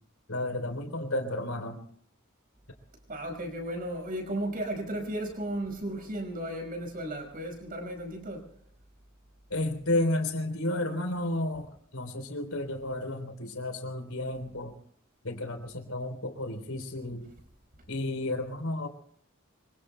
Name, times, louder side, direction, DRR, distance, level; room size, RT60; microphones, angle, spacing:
voice 1, 0.3-1.8 9.5-14.7 15.2-17.3 17.9-18.9, left 1 dB, 85° left, 3.6 m, -32 dB
voice 2, 3.1-8.5, right 1 dB, 40° right, 5.2 m, -35 dB
27.0 x 24.0 x 2.2 m
head